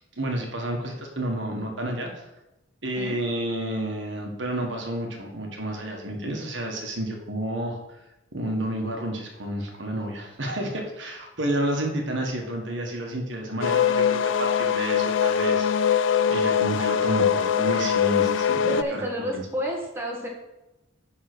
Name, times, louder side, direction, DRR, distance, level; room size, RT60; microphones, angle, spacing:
voice 1, 0.2-2.3 2.8-7.8 8.3-19.1 19.3-19.4, right 1 dB, 70° right, 1 dB, 1.5 m, -30 dB
sound 1, 13.6-18.8, left 7 dB, 75° left, 0.4 m, -22 dB
voice 2, 18.7-20.3, equal, 10° right, -2 dB, 1.6 m, -30 dB
9.8 x 4.0 x 6.1 m, 0.95 s
head